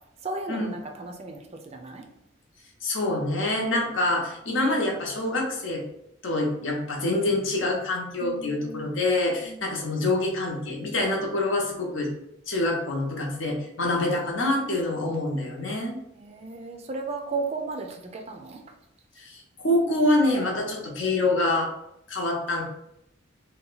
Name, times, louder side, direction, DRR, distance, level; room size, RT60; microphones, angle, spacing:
voice 1, 0.2-2.1 8.2-9.0 9.4-9.7 16.2-18.6, right 3 dB, 30° right, 3 dB, 0.4 m, -35 dB
voice 2, 2.8-5.8 6.2-12.1 12.5-16.0 19.2-21.7 22.1-22.6, left 2 dB, 80° left, -1 dB, 0.8 m, -26 dB
2.8 x 2.2 x 3.9 m, 0.80 s
head